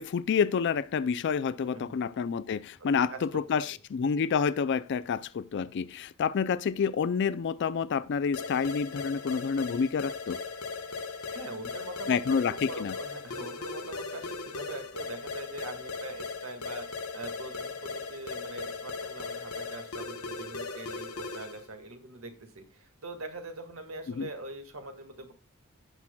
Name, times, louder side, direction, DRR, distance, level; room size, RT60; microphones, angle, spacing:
voice 1, 0.0-10.4 12.1-12.9 24.1-24.3, left 6 dB, 55° left, 0.4 m, -28 dB
voice 2, 1.6-2.0 2.8-3.6 11.1-25.3, right 2 dB, 70° right, 1.8 m, -43 dB
sound 1, 8.3-21.7, left 4 dB, 80° left, 1.1 m, -38 dB
15.5 x 5.9 x 2.3 m
head